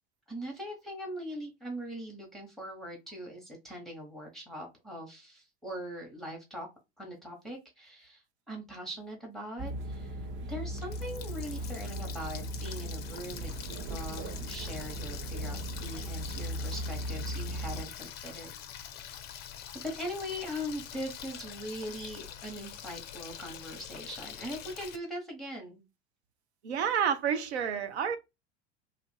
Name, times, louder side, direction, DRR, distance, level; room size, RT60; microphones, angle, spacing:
voice 1, 0.3-6.7 7.0-18.5 19.8-25.8, equal, ahead, 0.9 m, -41 dB
sound 1, 9.6-17.8, right 1 dB, 35° right, 0.7 m, -38 dB
Water tap faucet, 10.5-25.0, left 10 dB, 30° left, 0.4 m, -45 dB
voice 2, 26.6-28.2, right 7 dB, 75° right, 0.6 m, -29 dB
2.8 x 2.4 x 3.1 m
figure-of-eight pair, 75°, 34 cm